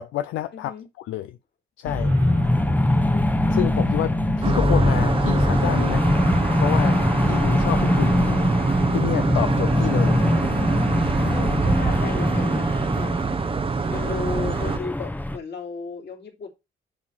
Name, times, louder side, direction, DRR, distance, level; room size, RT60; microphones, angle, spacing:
voice 1, 0.0-1.4 1.8-2.2 3.5-6.1 6.6-8.4 8.9-10.2, left 14 dB, 90° left, 0.5 m, -28 dB
voice 2, 0.5-0.9 2.9-3.3 11.3-13.1 13.9-16.5, left 5 dB, 60° left, 3.3 m, -34 dB
sound 1, 1.9-15.4, left 1 dB, 10° left, 0.8 m, -22 dB
sound 2, 1.9-13.0, right 6 dB, 85° right, 3.2 m, -37 dB
sound 3, 4.4-14.8, right 5 dB, 25° right, 0.7 m, -25 dB
10.5 x 3.8 x 4.4 m
cardioid pair, 90°, 20 cm